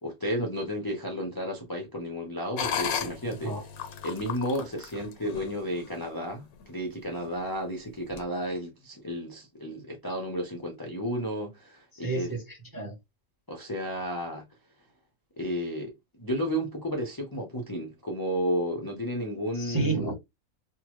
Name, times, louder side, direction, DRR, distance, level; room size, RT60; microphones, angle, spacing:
voice 1, 0.0-3.7 4.0-12.3 13.5-14.5 15.4-20.0, equal, 30° left, 0.4 m, -32 dB
sound 1, 2.6-6.0 6.5-6.6 7.2-7.5 8.1-8.2, left 8 dB, 80° left, 1.1 m, -35 dB
voice 2, 12.0-12.9 19.6-20.1, right 3 dB, 25° right, 0.5 m, -30 dB
3.3 x 2.2 x 3.0 m
omnidirectional pair, 1.5 m